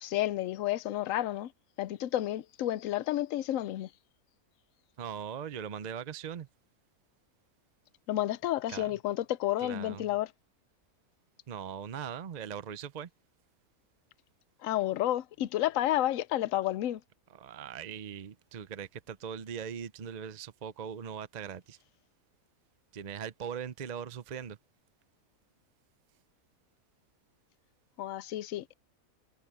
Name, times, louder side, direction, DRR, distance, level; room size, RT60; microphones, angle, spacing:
voice 1, 0.0-1.5 1.8-3.9 8.1-10.3 14.6-17.0 28.0-28.7, left 14 dB, 70° left, 1.0 m, -31 dB
voice 2, 5.0-6.5 8.7-8.9 9.6-10.1 11.5-13.1 17.3-21.8 22.9-24.6, right 8 dB, 50° right, 0.5 m, -40 dB
omnidirectional pair, 1.5 m